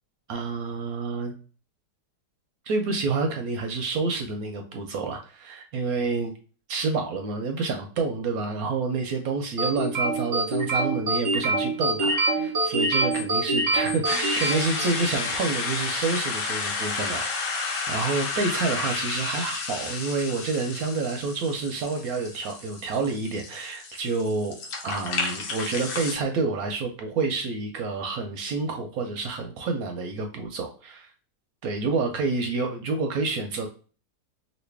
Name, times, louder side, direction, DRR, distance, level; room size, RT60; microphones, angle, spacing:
voice 1, 0.3-1.3 2.7-6.3 6.7-24.5 24.8-31.1 31.6-33.7, right 4 dB, 70° right, 4 dB, 0.9 m, -28 dB
sound 1, 9.6-15.3, right 2 dB, 30° right, 0.8 m, -25 dB
sound 2, 14.0-26.1, left 4 dB, 85° left, 1.4 m, -31 dB
3.1 x 2.6 x 3.2 m, 0.38 s
omnidirectional pair, 1.8 m